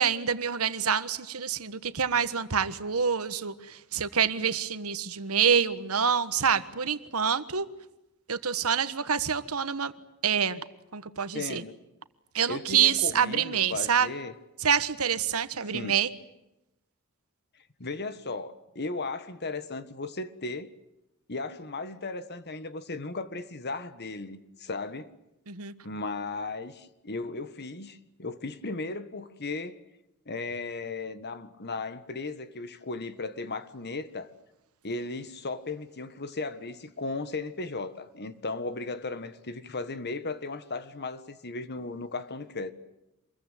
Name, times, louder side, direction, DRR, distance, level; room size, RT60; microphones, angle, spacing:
voice 1, 0.0-7.7 8.3-9.9 10.2-10.6 10.9-11.6 12.3-14.1 14.6-16.1 25.5-25.7, right 7 dB, 75° right, 1.4 m, -27 dB
voice 2, 11.3-11.7 12.5-14.3 15.7-16.0 17.8-20.7 21.3-25.1 25.8-29.8 30.3-34.3 34.8-42.7, left 3 dB, 50° left, 1.6 m, -36 dB
27.0 x 22.0 x 9.3 m
head